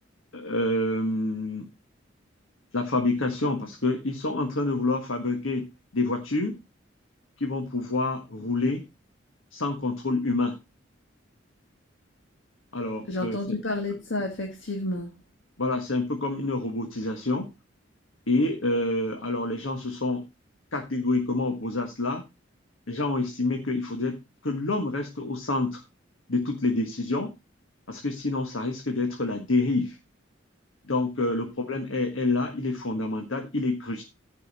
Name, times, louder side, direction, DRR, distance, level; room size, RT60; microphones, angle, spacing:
voice 1, 0.3-1.7 2.7-5.7 5.9-6.6 7.4-8.8 9.5-10.5 12.7-13.6 15.6-17.5 18.3-20.2 20.7-22.2 22.9-24.2 24.4-25.8 26.3-27.3 27.9-30.0 30.9-34.0, left 2 dB, 90° left, 1.6 m, -27 dB
voice 2, 13.1-15.2, left 2 dB, 70° left, 1.9 m, -30 dB
15.0 x 5.5 x 4.1 m
head